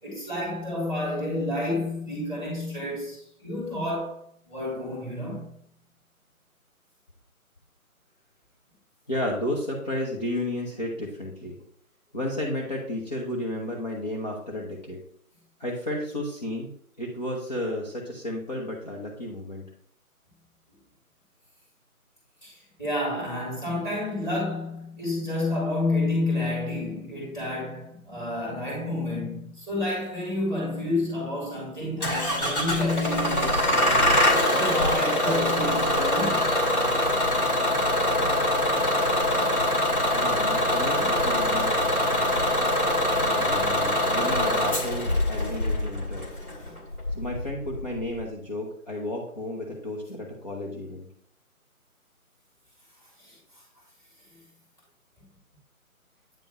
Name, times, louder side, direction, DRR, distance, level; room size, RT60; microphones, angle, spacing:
voice 1, 0.0-4.2 4.5-5.5 22.4-34.1 34.5-36.5 41.0-41.1 46.6-46.7 53.2-53.4, left 2 dB, 5° left, 2.1 m, -30 dB
voice 2, 9.1-11.6 12.1-15.0 15.6-16.7 17.0-19.6 40.1-41.8 43.2-46.3 47.1-51.1, left 1 dB, 30° left, 1.0 m, -32 dB
Bus / Engine starting, 32.0-48.2, left 1 dB, 90° left, 2.5 m, -24 dB
9.2 x 3.5 x 4.4 m
figure-of-eight pair, 160°, 43 cm